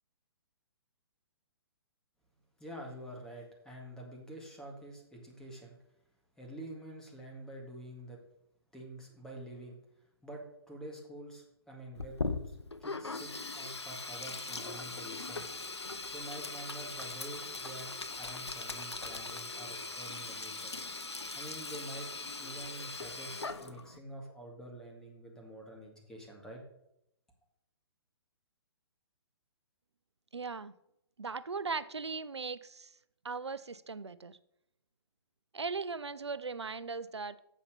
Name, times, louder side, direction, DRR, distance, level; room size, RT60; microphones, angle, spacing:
voice 1, 2.6-5.8 6.4-8.2 8.7-15.5 16.1-20.7 21.3-22.1 22.4-26.6, right 1 dB, 5° left, 0 dB, 2.0 m, -47 dB
Sink (filling or washing), 12.0-24.0, left 3 dB, 90° left, 0.7 m, -40 dB
voice 2, 30.3-30.7 31.2-33.0 33.2-34.4 35.5-37.4, right 4 dB, 90° right, 16 dB, 0.5 m, -38 dB
7.2 x 5.8 x 6.8 m, 0.78 s
figure-of-eight pair, 130°, 14 cm